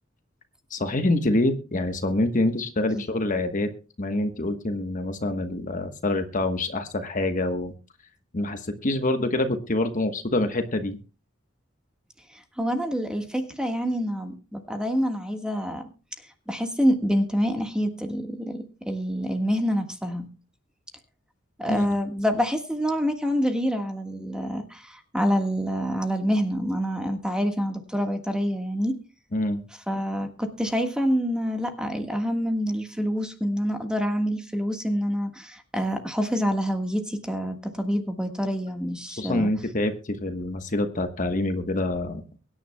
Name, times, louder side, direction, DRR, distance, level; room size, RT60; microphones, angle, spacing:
voice 1, 0.7-3.7 4.0-7.7 8.3-11.0 21.7-21.9 29.3-29.6 39.2-42.2, left 2 dB, 40° left, 7 dB, 1.1 m, -26 dB
voice 2, 12.3-15.9 16.5-20.3 21.6-29.0 29.9-39.5, equal, 5° right, 5 dB, 1.5 m, -27 dB
23.0 x 10.0 x 2.2 m, 0.33 s
head